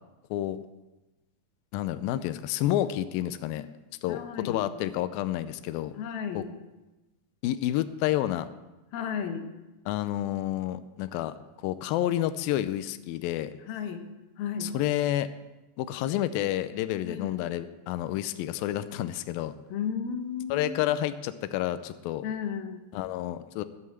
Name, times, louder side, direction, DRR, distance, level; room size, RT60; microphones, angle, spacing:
voice 1, 0.3-0.6 1.7-3.7 4.0-5.9 6.4-6.5 7.4-8.5 9.9-11.4 11.6-13.5 14.6-15.3 15.8-19.5 20.5-22.3 22.9-23.6, left 13 dB, 90° left, 12 dB, 2.1 m, -29 dB
voice 2, 4.1-4.7 5.9-6.5 8.9-9.5 13.7-14.0 14.4-14.7 17.0-17.5 19.7-20.9 22.2-22.8, left 7 dB, 70° left, 6 dB, 2.8 m, -34 dB
17.0 x 5.8 x 7.8 m, 1.1 s
omnidirectional pair, 4.8 m